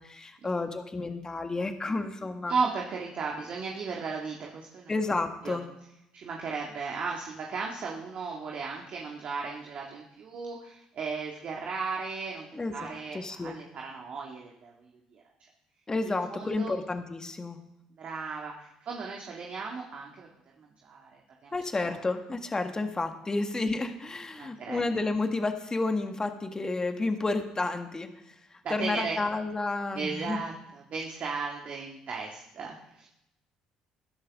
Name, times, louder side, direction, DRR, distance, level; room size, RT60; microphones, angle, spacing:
voice 1, 0.0-2.5 4.9-5.6 12.5-13.6 15.9-17.6 21.5-30.4, left 3 dB, 25° left, 6 dB, 1.7 m, -31 dB
voice 2, 2.5-4.9 5.4-5.6 6.1-15.2 16.0-16.7 18.0-20.3 20.6-21.5 21.8-22.0 24.4-24.8 28.6-29.2 29.9-33.1, right 4 dB, 50° right, -1 dB, 2.1 m, -36 dB
21.0 x 11.0 x 3.7 m, 0.84 s
hypercardioid pair, 55°, 3 cm